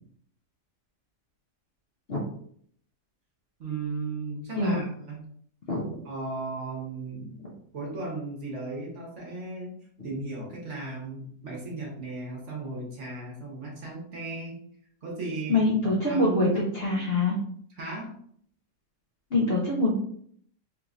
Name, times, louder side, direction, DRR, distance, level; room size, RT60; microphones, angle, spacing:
voice 1, 3.6-5.2 6.0-7.3 7.7-9.7 10.0-14.6 15.0-16.6 17.7-18.1, right 3 dB, 50° right, -2 dB, 1.1 m, -36 dB
voice 2, 15.5-17.3 19.3-19.9, left 2 dB, 60° left, -3 dB, 0.6 m, -24 dB
3.5 x 3.0 x 2.5 m, 0.63 s
omnidirectional pair, 1.8 m